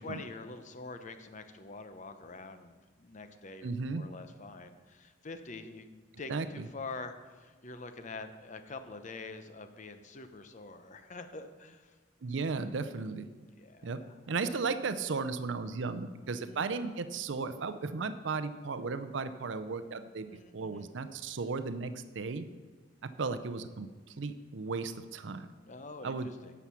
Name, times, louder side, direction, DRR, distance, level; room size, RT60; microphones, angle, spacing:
voice 1, 0.0-5.9 6.2-12.0 13.6-14.2 16.2-16.6 20.3-20.9 25.6-26.5, left 3 dB, 40° left, 9 dB, 0.8 m, -46 dB
voice 2, 3.6-4.0 6.3-6.7 12.2-13.3 13.8-14.0 14.3-22.5 23.0-25.5 26.0-26.3, right 4 dB, 75° right, 11 dB, 0.6 m, -35 dB
11.0 x 7.1 x 5.8 m, 1.4 s
head